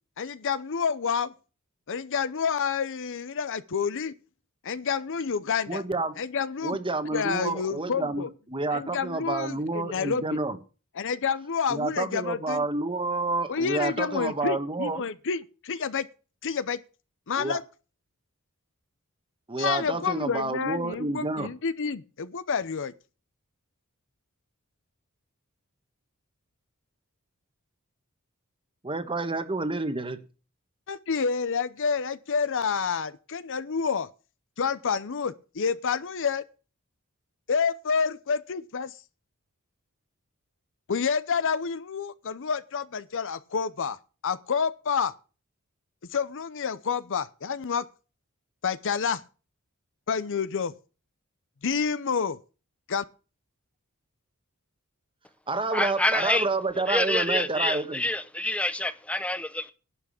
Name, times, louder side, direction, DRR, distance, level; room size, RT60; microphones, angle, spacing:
voice 1, 0.2-1.3 1.9-4.1 4.6-5.8 6.2-6.8 7.1-8.3 8.7-10.4 11.0-12.6 13.5-16.1 16.4-16.8 17.3-17.6 19.6-22.9 30.9-34.1 34.6-36.4 37.5-38.9 40.9-44.0 44.2-45.1 46.1-47.8 48.6-49.2 50.1-50.7 51.6-52.4 52.9-53.0, left 6 dB, 60° left, 0.7 m, -29 dB
voice 2, 5.7-6.1 6.6-10.6 11.7-15.0 17.4-17.6 19.5-21.5 28.8-30.2 55.5-58.0, right 3 dB, 25° right, 1.3 m, -29 dB
voice 3, 55.7-56.5 56.9-59.7, left 1 dB, 5° left, 0.8 m, -27 dB
11.5 x 5.9 x 8.5 m
head